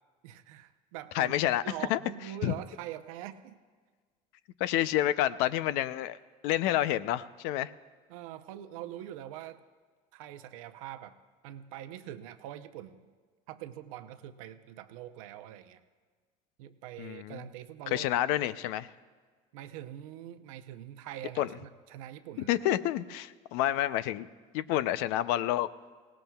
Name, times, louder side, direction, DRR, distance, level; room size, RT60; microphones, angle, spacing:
voice 1, 0.2-1.3 1.6-3.6 8.1-9.6 10.1-11.2 11.4-13.1 13.5-15.8 16.6-18.1 19.5-22.6, right 12 dB, 85° right, 8 dB, 0.7 m, -43 dB
voice 2, 1.1-1.6 1.9-2.0 2.4-2.5 4.6-6.2 6.4-7.7 17.0-17.5 17.9-18.9 21.4-21.5 22.5-24.3 24.5-25.7, left 13 dB, 75° left, 14 dB, 0.6 m, -29 dB
22.5 x 17.5 x 2.3 m, 1.5 s
supercardioid pair, 100°, 17 cm